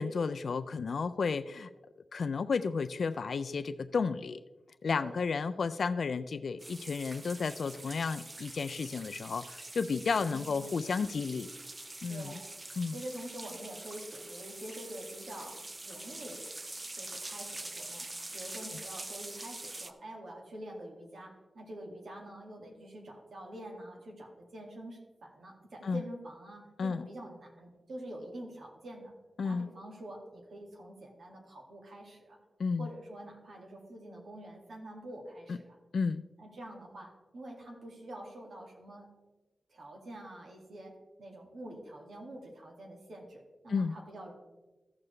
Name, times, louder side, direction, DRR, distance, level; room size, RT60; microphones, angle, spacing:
voice 1, 0.0-1.7 2.1-4.4 4.8-11.5 12.0-12.3 12.8-13.0 25.8-26.0 26.8-27.1 29.4-29.7 32.6-32.9 35.5-35.6 35.9-36.2 43.7-43.9, left 5 dB, 70° left, 10 dB, 0.3 m, -32 dB
sound 1, 6.6-19.9, right 2 dB, 30° right, 0.5 m, -45 dB
voice 2, 10.3-10.7 12.1-12.5 12.9-16.4 16.9-29.1 29.4-32.4 32.8-35.8 36.4-39.1 39.7-44.3, right 1 dB, 80° right, 0 dB, 2.1 m, -46 dB
14.5 x 6.7 x 3.2 m, 1.2 s
wide cardioid pair, 105°, 0 cm